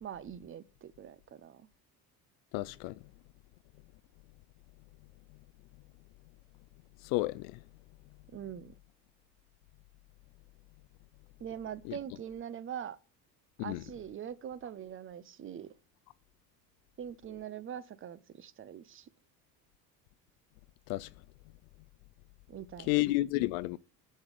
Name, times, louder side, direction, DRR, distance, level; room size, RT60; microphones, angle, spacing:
voice 1, 0.0-1.7 8.3-8.7 11.4-13.0 13.6-15.7 17.0-19.1 22.5-22.9, right 9 dB, 25° right, 0.5 m, -43 dB
voice 2, 2.5-3.0 7.0-7.6 11.8-12.0 13.6-13.8 20.9-21.1 22.9-23.8, left 20 dB, 60° left, 0.5 m, -31 dB
7.1 x 6.4 x 4.9 m
hypercardioid pair, 65°, 49 cm